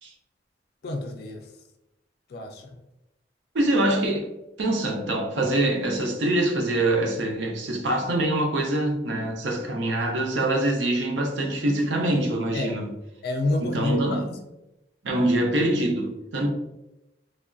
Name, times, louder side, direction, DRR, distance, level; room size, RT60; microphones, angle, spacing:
voice 1, 0.8-1.4 2.3-2.7 12.5-12.7 13.2-14.2, left 2 dB, 55° left, 0.3 m, -28 dB
voice 2, 3.5-4.3 4.6-12.9 13.6-14.2 15.0-16.5, right 1 dB, 90° right, 0.6 m, -24 dB
3.2 x 2.3 x 2.5 m
head